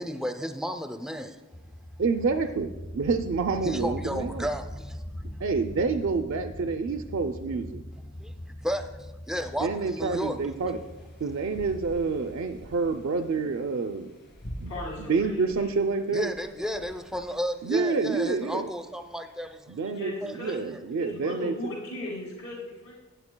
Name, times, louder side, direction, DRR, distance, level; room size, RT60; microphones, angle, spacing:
voice 1, 0.0-1.4 3.6-5.0 8.2-8.3 8.6-10.4 16.1-19.9 20.2-20.6, equal, 5° right, 7 dB, 0.5 m, -33 dB
sound 1, 1.5-13.9, left 1 dB, 35° left, 0.9 m, -42 dB
voice 2, 2.0-4.5 5.4-7.8 9.6-10.8 11.2-14.1 14.6-14.7 15.1-16.3 17.6-18.7 19.7-20.1 20.4-21.5, right 4 dB, 65° right, 6 dB, 0.4 m, -28 dB
sound 2, 10.1-19.5, equal, 50° left, 2.9 m, -47 dB
voice 3, 14.7-15.8 19.9-20.7 21.0-22.9, left 1 dB, 75° left, -3 dB, 2.2 m, -37 dB
15.5 x 9.2 x 2.2 m, 1.1 s
head